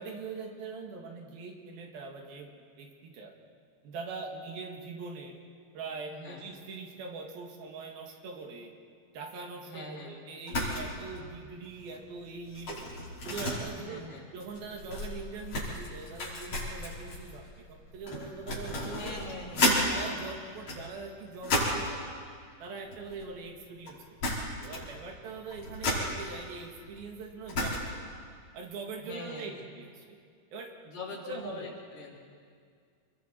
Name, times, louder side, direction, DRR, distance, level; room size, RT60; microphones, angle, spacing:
voice 1, 0.0-2.5 2.8-3.3 3.8-5.4 5.7-8.7 9.1-12.9 13.2-14.0 14.3-19.2 19.8-22.0 22.6-24.0 24.6-28.1 28.5-30.2 30.5-30.7 31.2-31.8, right 4 dB, 75° right, 2 dB, 3.6 m, -42 dB
voice 2, 6.1-6.5 9.7-10.1 13.8-14.3 18.8-19.7 29.0-29.6 30.8-32.2, left 2 dB, 65° left, -3 dB, 4.8 m, -43 dB
sound 1, 10.5-10.9 11.1-11.4 11.8-19.8 20.5-21.9 22.8-23.6 23.9-24.0 24.2-25.0 25.2-28.1, left 1 dB, 45° left, 6.0 m, -33 dB
28.0 x 22.0 x 4.5 m, 2.1 s
omnidirectional pair, 4.4 m